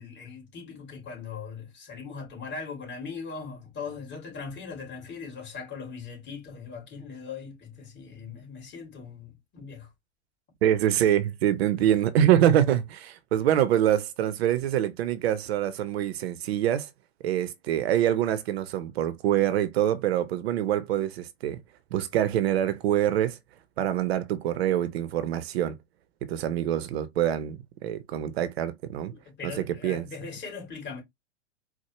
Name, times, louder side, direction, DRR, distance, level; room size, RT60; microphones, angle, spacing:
voice 1, 0.0-9.9 11.8-11.9 29.1-31.0, left 5 dB, 30° left, 2.4 m, -40 dB
voice 2, 10.6-16.9 17.2-21.6 21.9-23.4 23.8-25.8 26.2-29.1 29.4-30.1, right 11 dB, 60° right, 0.6 m, -25 dB
4.4 x 2.0 x 2.9 m
hypercardioid pair, 100°, 35 cm